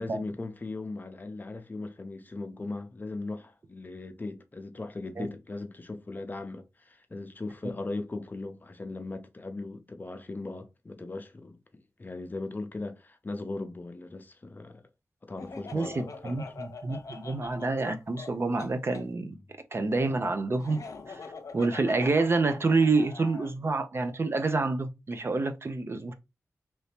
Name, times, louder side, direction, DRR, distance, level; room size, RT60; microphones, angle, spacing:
voice 1, 0.0-14.8 15.2-16.4, left 2 dB, 35° left, 0.6 m, -38 dB
Laughter, 15.4-19.0 20.6-23.5, left 4 dB, 75° left, 0.7 m, -44 dB
voice 2, 15.7-19.3 19.7-20.8 21.1-21.2 21.5-26.1, right 3 dB, 45° right, 0.6 m, -28 dB
3.0 x 2.7 x 3.3 m
wide cardioid pair, 100°, 6 cm